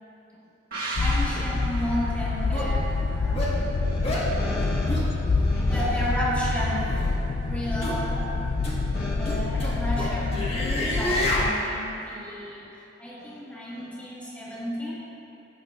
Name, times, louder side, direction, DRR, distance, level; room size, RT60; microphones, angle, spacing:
sound 1, 0.7-4.2 4.5-4.6, right 2 dB, 55° right, 1.7 m, -37 dB
sound 2, 1.0-11.5, left 3 dB, 85° left, 0.5 m, -27 dB
voice 1, 1.0-3.7 5.7-7.1 7.4-8.3 8.7-12.6 13.0-15.0, equal, 10° left, -8 dB, 1.8 m, -33 dB
sound 3, 1.8-1.9 2.5-2.7 3.4-3.5 4.0-4.3 4.9-5.1 5.7-5.8 6.8-7.1 7.8-8.0 8.6-8.8 9.2-11.5, left 1 dB, 35° left, 1.3 m, -29 dB
voice 2, 3.8-5.8 8.9-9.4, left 1 dB, 55° left, -5 dB, 1.0 m, -36 dB
15.5 x 6.5 x 2.4 m, 2.9 s
head